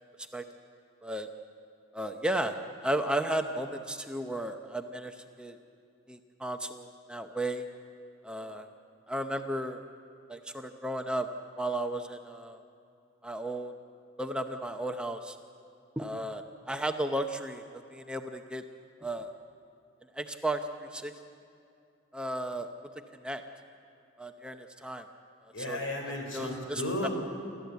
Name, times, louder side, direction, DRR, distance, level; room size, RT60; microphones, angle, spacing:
voice 1, 1.9-2.6 2.8-5.6 6.1-7.6 8.2-8.7 9.1-9.8 10.3-11.3 11.6-12.6 13.2-13.7 14.2-15.4 16.0-18.6 19.0-19.3 20.1-21.1 22.1-22.7 23.2-23.4 24.2-25.0 25.6-25.8 26.3-27.1, right 1 dB, 5° right, 5 dB, 0.7 m, -34 dB
voice 2, 25.5-27.1, left 1 dB, 80° left, 2 dB, 4.7 m, -34 dB
28.5 x 13.5 x 8.2 m, 2.5 s
head